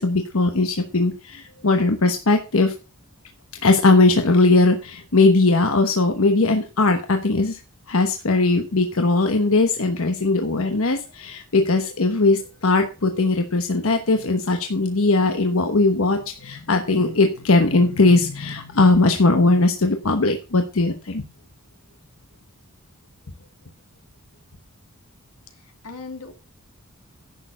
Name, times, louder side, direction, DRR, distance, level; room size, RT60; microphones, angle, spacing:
voice 1, 0.0-2.7 3.6-7.6 7.9-21.2, left 3 dB, 70° left, 6 dB, 1.1 m, -19 dB
voice 2, 25.5-26.3, left 4 dB, 90° left, 4 dB, 2.7 m, -38 dB
10.5 x 6.6 x 5.6 m, 0.33 s
head